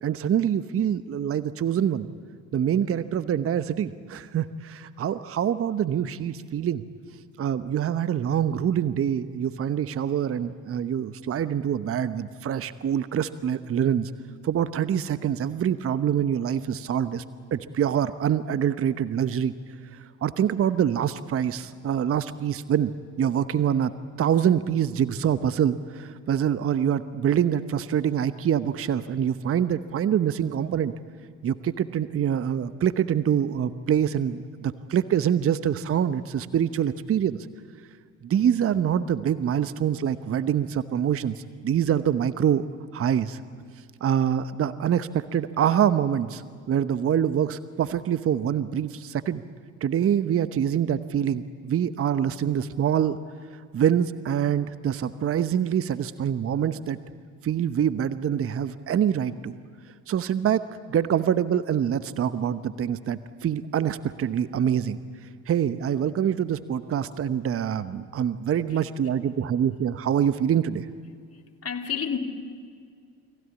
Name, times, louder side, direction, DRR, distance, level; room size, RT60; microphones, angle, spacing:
voice 1, 0.0-2.1 2.5-6.8 7.4-14.1 14.4-17.2 17.5-19.5 20.2-22.9 23.2-23.9 24.2-30.9 31.4-37.4 38.2-42.6 42.9-43.4 44.0-49.4 49.8-53.2 53.7-57.0 57.4-59.6 60.1-60.6 60.9-65.0 65.5-70.9, right 9 dB, 35° right, 13 dB, 1.0 m, -25 dB
voice 2, 71.3-72.2, left 7 dB, 35° left, 2 dB, 3.1 m, -31 dB
29.5 x 22.5 x 8.5 m, 2.1 s
figure-of-eight pair, 55°, 40 cm